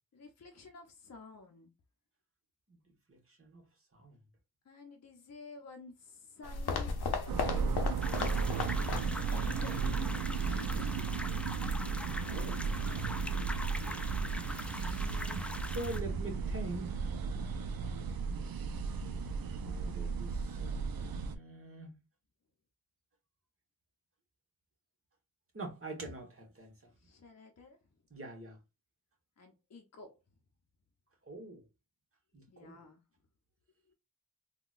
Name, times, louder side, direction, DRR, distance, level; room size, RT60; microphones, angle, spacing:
voice 1, 0.1-1.7 4.6-7.9 8.5-11.1 14.1-15.0 17.9-18.1 27.0-27.8 29.4-30.2 32.5-33.0, left 3 dB, 45° left, 0.6 m, -52 dB
voice 2, 3.1-3.6 3.9-4.2 12.2-12.6 14.7-17.0 19.6-22.0 25.5-26.7 28.1-28.6 31.3-31.6 32.3-32.8, right 2 dB, 35° right, 1.2 m, -44 dB
sound 1, 6.4-9.5 9.7-9.8 10.5-10.6, left 4 dB, 85° left, 0.7 m, -36 dB
sound 2, 7.3-21.4, right 5 dB, 65° right, 0.5 m, -35 dB
sound 3, 8.0-16.0, left 1 dB, 5° left, 0.4 m, -43 dB
3.7 x 2.3 x 2.4 m
cardioid pair, 55°, 37 cm